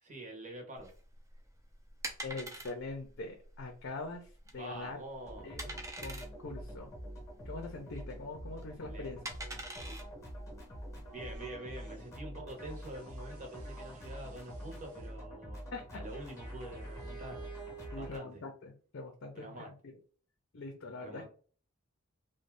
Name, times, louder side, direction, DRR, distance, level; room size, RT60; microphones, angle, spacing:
voice 1, 0.0-0.9 4.5-5.5 8.8-9.1 9.9-10.0 11.1-15.6 15.9-17.4 18.0-18.4 19.3-19.7 21.0-21.2, right 1 dB, 35° right, 2 dB, 0.8 m, -46 dB
sound 1, 0.8-11.4, right 1 dB, 15° right, 0.5 m, -46 dB
voice 2, 2.2-4.3 4.5-5.0 5.4-5.7 6.0-6.9 7.5-9.2 15.7-16.0 17.9-19.9 20.5-21.2, left 3 dB, 55° left, 3 dB, 0.6 m, -43 dB
sound 2, 5.2-18.2, equal, 15° left, 0.8 m, -46 dB
sound 3, 11.0-12.2 12.6-15.1 16.0-18.7, right 9 dB, 80° right, 0.7 m, -54 dB
2.6 x 2.2 x 3.2 m, 0.40 s
head